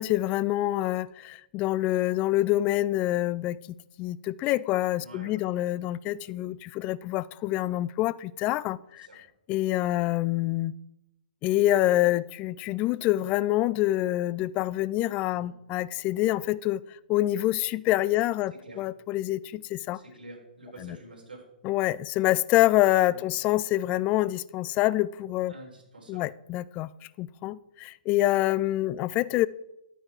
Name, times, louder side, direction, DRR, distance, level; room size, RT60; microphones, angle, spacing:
voice 1, 0.0-3.6 4.0-9.1 9.5-10.7 11.4-16.8 17.1-20.0 20.8-21.0 21.6-25.5 26.1-26.9 27.2-29.5, left 15 dB, 25° left, 0.4 m, -26 dB
voice 2, 5.0-5.6 9.0-9.2 15.3-15.5 18.6-18.8 19.9-21.5 23.1-23.2 25.5-26.3, right 1 dB, 75° right, 4.2 m, -48 dB
11.0 x 9.0 x 4.5 m
figure-of-eight pair, 125°, 5 cm